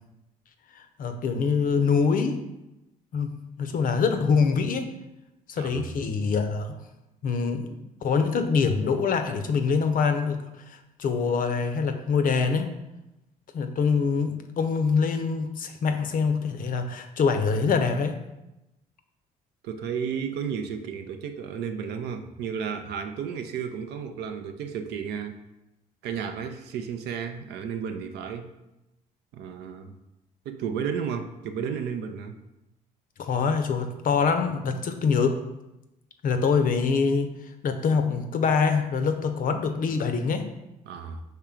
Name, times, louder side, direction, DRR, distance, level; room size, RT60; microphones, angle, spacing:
voice 1, 1.0-2.4 3.1-3.3 3.6-4.9 5.5-6.7 7.2-10.4 10.7-12.7 13.5-18.2 33.2-35.4 36.2-37.3 37.6-40.5, left 5 dB, 45° left, 7 dB, 0.6 m, -24 dB
voice 2, 5.6-5.9 19.6-25.4 26.0-28.5 29.3-29.9 30.5-32.4 40.9-41.2, right 7 dB, 60° right, 7 dB, 0.5 m, -33 dB
4.4 x 3.3 x 3.7 m, 0.93 s
hypercardioid pair, 50°, 19 cm